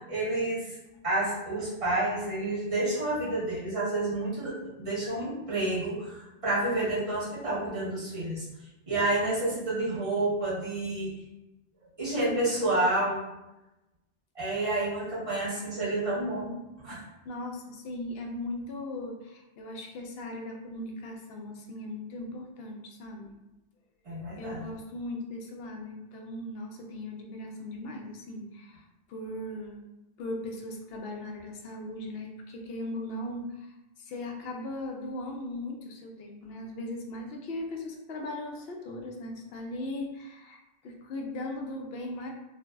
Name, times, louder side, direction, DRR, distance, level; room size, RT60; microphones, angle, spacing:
voice 1, 0.1-0.8 1.0-8.4 8.9-11.1 12.0-13.2 14.3-16.6 16.8-17.0 24.0-24.6, right 2 dB, 35° right, -8 dB, 1.2 m, -29 dB
voice 2, 17.2-23.4 24.4-29.8 30.2-42.3, left 1 dB, 70° left, 2 dB, 0.8 m, -38 dB
2.5 x 2.0 x 3.4 m, 0.97 s
omnidirectional pair, 1.1 m